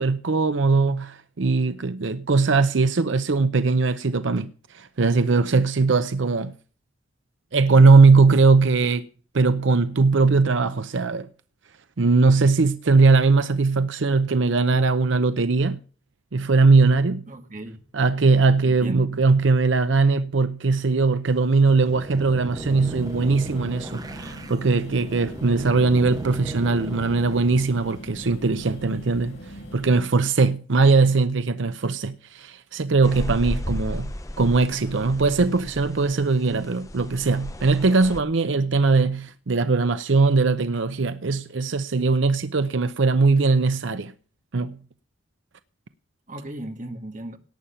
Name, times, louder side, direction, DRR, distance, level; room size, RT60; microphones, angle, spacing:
voice 1, 0.0-6.5 7.5-9.1 9.3-11.3 12.0-15.8 16.3-17.2 17.9-29.4 29.7-34.1 34.4-44.1 44.5-44.8, right 3 dB, 75° right, 0.6 m, -20 dB
voice 2, 17.3-17.8 18.6-19.2 46.3-47.4, right 1 dB, 40° right, 1.6 m, -37 dB
sound 1, 21.3-28.0, right 1 dB, 20° right, 0.7 m, -37 dB
sound 2, 22.6-30.0, equal, 60° left, 7.3 m, -41 dB
sound 3, 33.0-38.2, left 1 dB, 15° left, 0.8 m, -34 dB
18.0 x 9.0 x 5.7 m
head